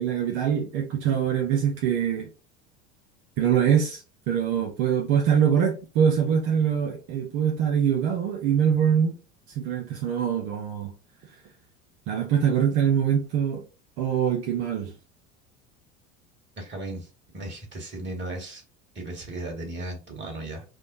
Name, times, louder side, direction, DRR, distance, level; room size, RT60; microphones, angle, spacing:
voice 1, 0.0-2.3 3.4-4.0 4.3-9.1 9.6-10.9 12.1-13.6 14.0-14.9, right 8 dB, 65° right, 0.8 m, -23 dB
voice 2, 16.6-17.1 17.3-18.6 19.0-20.6, right 2 dB, 30° right, 1.8 m, -35 dB
4.8 x 2.1 x 2.5 m
hypercardioid pair, 75°, 36 cm